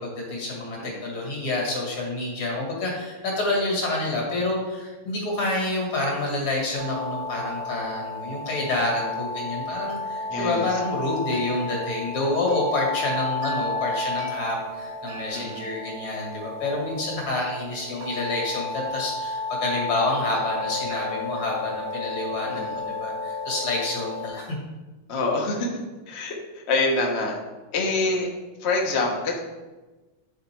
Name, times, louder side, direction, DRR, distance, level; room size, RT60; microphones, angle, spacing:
voice 1, 0.0-24.6, left 2 dB, 70° left, -2 dB, 2.7 m, -28 dB
sound 1, 6.7-24.3, left 2 dB, 75° right, 1.9 m, -32 dB
voice 2, 10.3-10.7 15.3-15.6 22.4-22.8 25.1-25.8 26.1-27.4 27.7-28.3 28.6-29.4, left 2 dB, 45° left, 0 dB, 0.9 m, -26 dB
9.3 x 3.9 x 4.5 m, 1.2 s
omnidirectional pair, 2.4 m